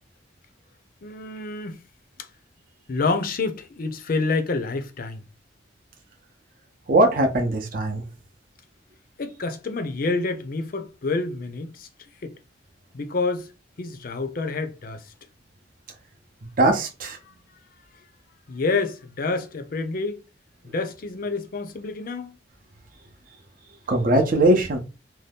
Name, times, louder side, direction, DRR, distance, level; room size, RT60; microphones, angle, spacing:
voice 1, 1.0-1.8 2.9-5.2 9.2-11.9 12.2-12.3 12.9-13.5 13.8-15.0 17.2-17.3 18.5-20.2 20.7-22.3, left 3 dB, 50° left, 0.5 m, -28 dB
voice 2, 6.9-8.0 16.6-17.2 23.9-24.8, right 1 dB, 45° right, 0.6 m, -20 dB
2.7 x 2.2 x 3.4 m
head